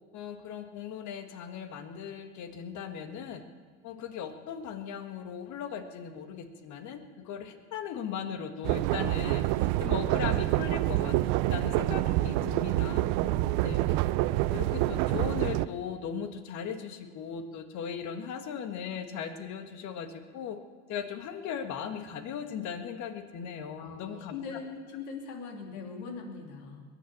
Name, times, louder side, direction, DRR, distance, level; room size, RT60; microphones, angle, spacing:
voice 1, 0.1-3.4 3.8-11.2 11.5-13.0 13.6-13.8 14.4-20.6 20.9-24.6, left 7 dB, 55° left, 8 dB, 1.7 m, -38 dB
sound 1, 8.6-15.7, right 16 dB, 65° right, 0.6 m, -27 dB
voice 2, 12.4-12.8 13.1-14.0 23.8-26.8, left 5 dB, 75° left, 1 dB, 3.0 m, -42 dB
21.5 x 7.3 x 8.5 m, 1.5 s
hypercardioid pair, 90°, 35 cm